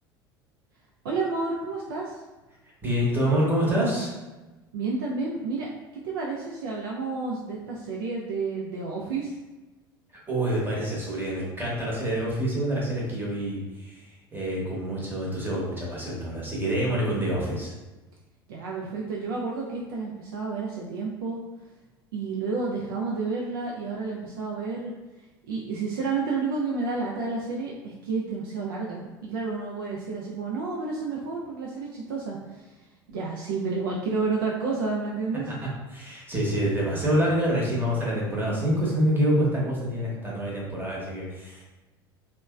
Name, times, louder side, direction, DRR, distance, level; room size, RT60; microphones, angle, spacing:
voice 1, 1.0-2.2 4.7-9.3 18.5-21.4 22.1-24.9 25.5-32.7 33.1-35.4, right 4 dB, 65° right, -3 dB, 0.4 m, -30 dB
voice 2, 2.8-4.1 10.3-17.7 35.4-41.6, equal, 15° right, -4 dB, 0.9 m, -27 dB
2.9 x 2.1 x 2.3 m, 1.1 s
figure-of-eight pair, 70°, 13 cm